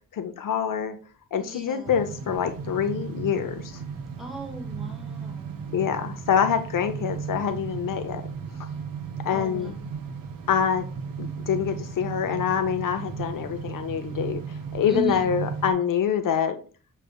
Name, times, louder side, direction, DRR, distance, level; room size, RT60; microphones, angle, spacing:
voice 1, 0.1-1.0 1.3-3.8 5.7-8.2 9.2-9.7 10.5-10.9 11.2-16.6, left 8 dB, 70° left, 7 dB, 0.6 m, -26 dB
voice 2, 1.4-2.0 4.2-5.7 9.3-9.9 14.9-15.3, right 2 dB, ahead, 0 dB, 0.9 m, -36 dB
sound 1, 1.8-15.7, right 6 dB, 80° right, 0.7 m, -35 dB
6.3 x 3.2 x 2.3 m, 0.37 s
wide cardioid pair, 170°, 33 cm